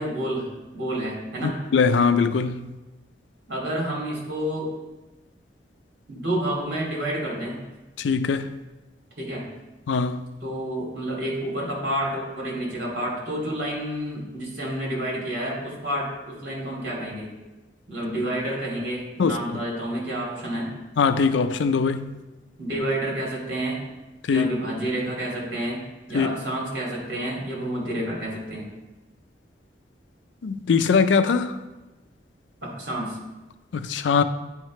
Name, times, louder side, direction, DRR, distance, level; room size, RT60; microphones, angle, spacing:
voice 1, 0.0-1.5 3.5-4.7 6.1-7.6 9.2-9.4 10.4-17.3 17.9-20.7 22.6-23.8 24.3-25.8 26.1-28.7 32.6-33.2, right 1 dB, 80° right, 2.6 m, -29 dB
voice 2, 1.4-2.7 8.0-8.5 9.9-10.2 19.2-19.4 21.0-22.1 24.3-24.5 26.1-26.3 30.4-31.6 33.7-34.2, left 5 dB, 85° left, 0.4 m, -21 dB
9.5 x 4.8 x 3.2 m
head